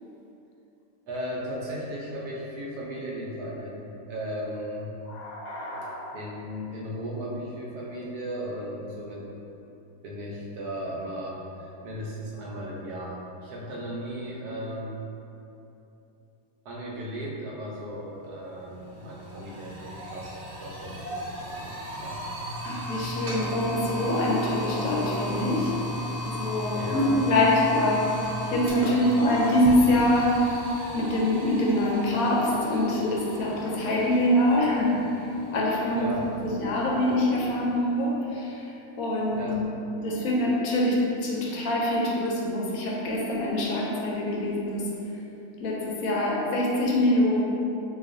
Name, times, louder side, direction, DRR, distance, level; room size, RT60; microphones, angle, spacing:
voice 1, 1.1-4.9 6.1-9.2 10.0-15.0 16.6-20.3 20.6-22.2 26.7-27.1 35.9-36.3 39.3-39.6, equal, 90° right, -4 dB, 1.2 m, -36 dB
voice 2, 5.1-6.1 22.6-25.7 26.2-30.5 30.9-35.3 35.5-36.1 36.4-39.5 40.0-44.9 45.6-47.4, left 1 dB, 70° left, -3 dB, 1.0 m, -25 dB
sound 1, 18.2-18.3 18.6-37.7, equal, 45° right, 0.8 m, -35 dB
4.0 x 2.9 x 2.5 m, 2.8 s
omnidirectional pair, 1.6 m